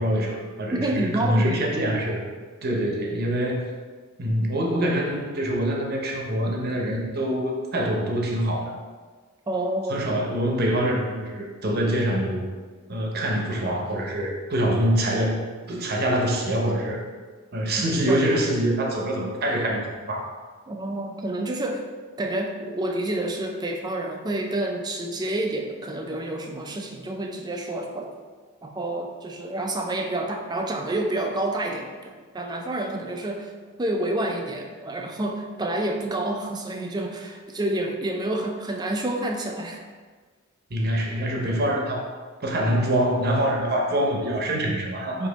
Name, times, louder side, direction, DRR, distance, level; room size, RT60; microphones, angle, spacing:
voice 1, 0.0-2.3 2.6-3.6 4.2-8.7 9.9-12.4 12.9-15.4 15.7-17.0 17.5-19.8 20.1-20.4 40.7-42.1 42.4-45.3, right 1 dB, 50° right, 0 dB, 0.7 m, -25 dB
voice 2, 0.7-1.7 9.5-10.0 18.1-18.2 20.7-21.9 22.2-28.1 28.6-33.5 33.8-39.8, right 1 dB, 20° right, 2 dB, 0.4 m, -28 dB
5.0 x 2.7 x 4.0 m, 1.4 s
head